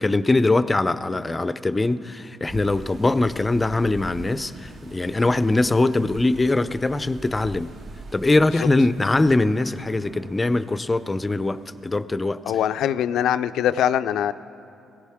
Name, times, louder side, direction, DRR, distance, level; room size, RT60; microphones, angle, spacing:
voice 1, 0.0-7.7 8.1-12.4, left 2 dB, 20° left, 14 dB, 0.5 m, -22 dB
sound 1, 2.5-12.0, right 3 dB, 55° right, 1.4 m, -44 dB
voice 2, 12.4-14.3, left 10 dB, 80° left, 13 dB, 0.4 m, -22 dB
22.5 x 16.5 x 3.6 m, 2.6 s
cardioid pair, 90°, 0 cm